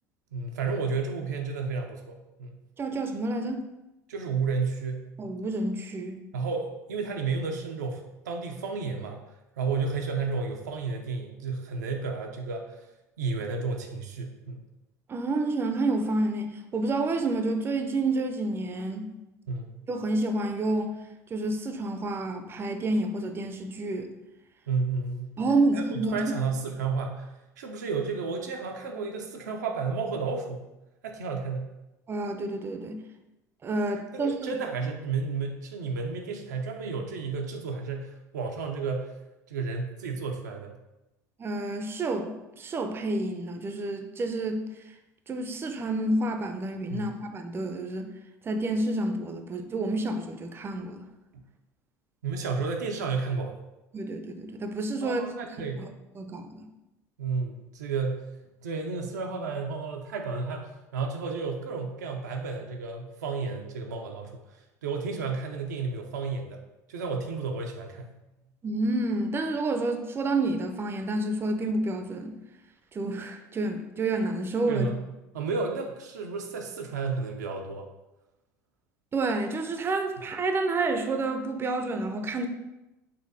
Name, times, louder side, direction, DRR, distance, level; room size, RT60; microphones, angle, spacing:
voice 1, 0.3-2.6 4.1-5.1 6.3-9.2 9.6-12.8 13.2-14.6 19.5-19.8 24.7-25.3 25.7-30.6 31.0-31.7 34.1-39.1 39.5-40.7 46.9-47.1 51.3-51.4 52.2-53.5 55.0-55.9 57.2-58.3 58.6-64.4 64.8-66.6 66.9-68.1 74.7-75.0 75.3-77.9, right 4 dB, 90° right, 2 dB, 0.5 m, -32 dB
voice 2, 2.8-3.7 5.2-6.2 15.1-19.1 19.9-20.9 21.3-24.1 25.4-26.2 32.1-33.0 33.6-34.5 41.4-42.3 42.6-44.7 45.3-48.1 48.5-51.1 53.9-55.2 55.8-55.9 56.2-56.7 68.6-72.4 72.9-74.9 79.1-82.5, right 2 dB, 25° right, 6 dB, 0.4 m, -29 dB
4.1 x 2.7 x 2.7 m, 0.98 s
hypercardioid pair, 80°, 9 cm